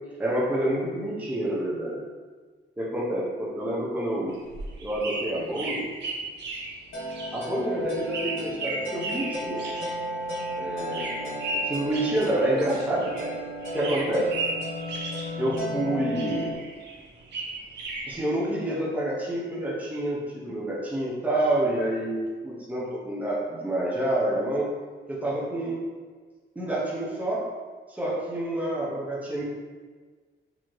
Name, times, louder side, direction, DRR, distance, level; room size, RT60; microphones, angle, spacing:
voice 1, 0.2-2.0 2.8-4.4 4.8-5.8 7.3-9.6 10.6-11.3 11.6-13.3 13.7-14.3 15.4-16.5 18.1-24.7 25.1-25.8 26.6-27.4 27.9-29.4, right 1 dB, 5° right, -5 dB, 0.7 m, -28 dB
sound 1, 4.3-13.4 13.6-15.9 16.1-18.2, right 3 dB, 65° right, 0.7 m, -35 dB
sound 2, 6.9-16.5, equal, 85° left, 1.2 m, -34 dB
4.5 x 2.7 x 3.0 m, 1.5 s
wide cardioid pair, 150°, 19 cm